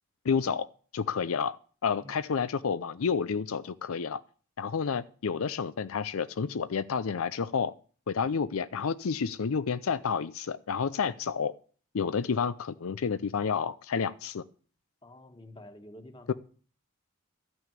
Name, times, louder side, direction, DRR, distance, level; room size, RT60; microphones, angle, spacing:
voice 1, 0.2-0.7 0.9-1.6 1.8-4.2 4.6-7.7 8.1-11.5 11.9-14.4 16.3-16.4, left 6 dB, 75° left, 14 dB, 0.5 m, -30 dB
voice 2, 15.0-16.3, left 1 dB, 20° left, 6 dB, 1.6 m, -49 dB
13.0 x 6.2 x 9.0 m, 0.42 s
head